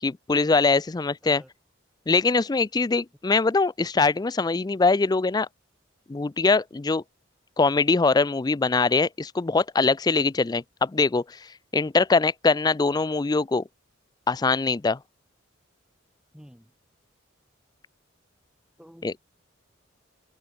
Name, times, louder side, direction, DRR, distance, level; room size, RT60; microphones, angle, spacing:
voice 1, 0.0-1.4 2.1-5.5 6.1-7.0 7.6-13.6 14.3-15.0 19.0-19.1, left 4 dB, 20° left, 0.4 m, -22 dB
voice 2, 16.3-16.7 18.8-19.4, equal, 5° right, 2.3 m, -50 dB
open air
head